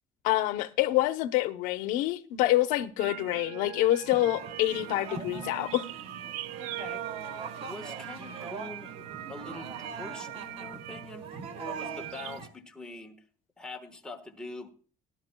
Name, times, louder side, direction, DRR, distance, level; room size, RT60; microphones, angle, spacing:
voice 1, 0.2-5.9, left 15 dB, 85° left, 0.7 m, -27 dB
sound 1, 3.0-12.4, right 14 dB, 70° right, 0.6 m, -41 dB
sound 2, 4.0-12.5, right 4 dB, 50° right, 1.5 m, -42 dB
voice 2, 6.6-13.2 13.6-14.7, left 2 dB, 5° left, 1.3 m, -44 dB
18.0 x 11.5 x 2.2 m
cardioid pair, 170°, 13 cm